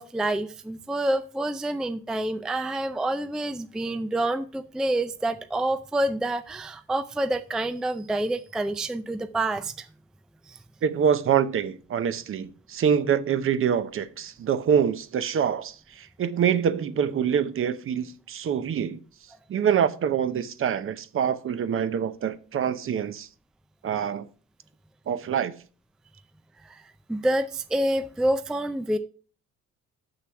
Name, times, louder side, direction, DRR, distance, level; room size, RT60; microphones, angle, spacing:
voice 1, 0.0-9.9 10.5-10.6 26.6-26.8 27.1-29.0, right 1 dB, ahead, 0.4 m, -27 dB
voice 2, 10.8-19.0 19.5-23.3 23.8-24.3 25.1-25.5, right 8 dB, 45° right, 0.7 m, -25 dB
6.7 x 6.2 x 5.7 m
cardioid pair, 115°, 31 cm